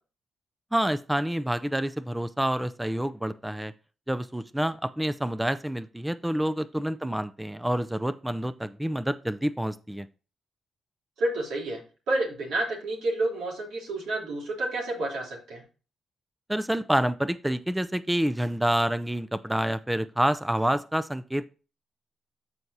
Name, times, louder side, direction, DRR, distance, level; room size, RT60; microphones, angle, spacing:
voice 1, 0.7-3.7 4.1-10.1 16.5-21.4, right 1 dB, 5° right, 14 dB, 0.5 m, -28 dB
voice 2, 11.2-11.8 12.1-15.6, right 2 dB, 90° right, -1 dB, 3.5 m, -29 dB
13.5 x 4.7 x 2.8 m, 0.34 s
cardioid pair, 75°, 0 cm